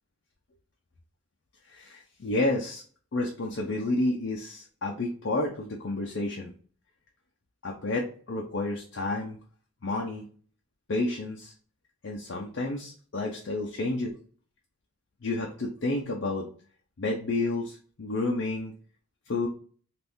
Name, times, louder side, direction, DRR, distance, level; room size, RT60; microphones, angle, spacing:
voice 1, 1.7-2.8 3.1-6.5 7.6-9.4 9.8-10.2 10.9-11.5 12.0-14.1 15.2-16.5 17.0-18.7 19.3-19.5, left 2 dB, 60° left, 0 dB, 0.5 m, -30 dB
3.5 x 2.5 x 2.6 m, 0.43 s
head